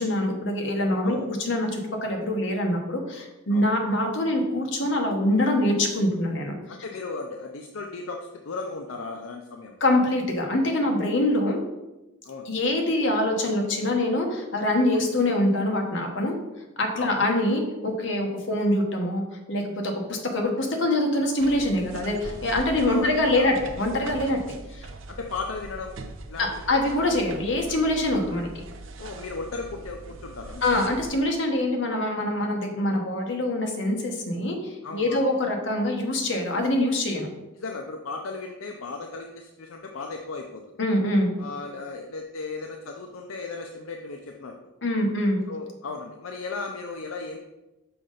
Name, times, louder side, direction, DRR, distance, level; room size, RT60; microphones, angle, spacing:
voice 1, 0.0-6.5 9.8-11.6 12.4-16.3 16.8-19.2 19.5-24.9 26.4-28.6 30.6-37.3 40.8-41.3 44.8-45.4, left 1 dB, 60° left, 2 dB, 1.1 m, -24 dB
voice 2, 6.7-9.8 12.2-12.5 14.9-15.1 16.9-17.2 22.9-23.5 25.1-26.0 26.3-26.6 29.0-30.6 34.8-35.3 37.6-40.6 41.4-44.5 45.5-47.4, left 3 dB, 75° left, 3 dB, 0.5 m, -36 dB
sound 1, 21.4-31.2, right 3 dB, 70° right, 0.6 m, -41 dB
5.9 x 5.1 x 3.9 m, 1.0 s
head